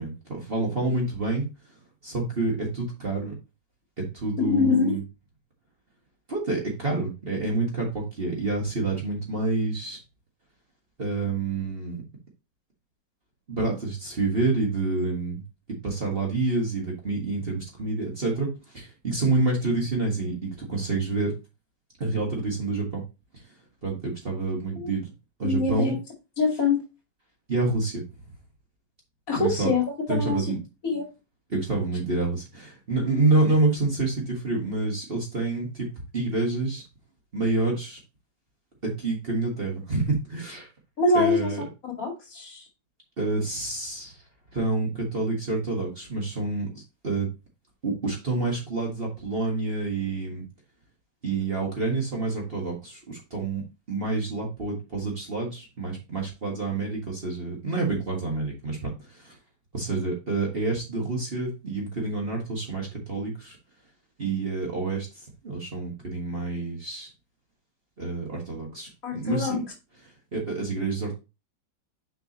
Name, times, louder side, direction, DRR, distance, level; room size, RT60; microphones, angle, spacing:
voice 1, 0.0-1.4 2.0-3.3 4.1-5.0 6.3-10.0 11.0-12.0 13.5-15.4 15.8-18.5 18.7-21.3 22.0-23.0 23.3-23.4 23.8-25.1 25.4-25.9 27.5-28.0 29.3-29.7 30.1-30.6 31.5-35.9 36.1-36.8 37.3-38.0 38.8-40.7 41.1-41.7 43.2-44.2 44.5-47.3 47.8-50.4 51.2-53.6 53.9-59.4 59.7-63.6 64.2-67.1 68.0-69.6 70.0-71.2, right 3 dB, 35° right, -1 dB, 1.7 m, -28 dB
voice 2, 4.4-5.0 24.7-24.9 25.4-26.0 26.4-26.8 29.3-29.8 30.1-30.4 30.8-31.1 41.0-41.5 42.0-42.6 69.0-69.6, left 4 dB, 50° left, 0 dB, 2.6 m, -24 dB
6.6 x 5.3 x 2.9 m, 0.27 s
omnidirectional pair, 1.9 m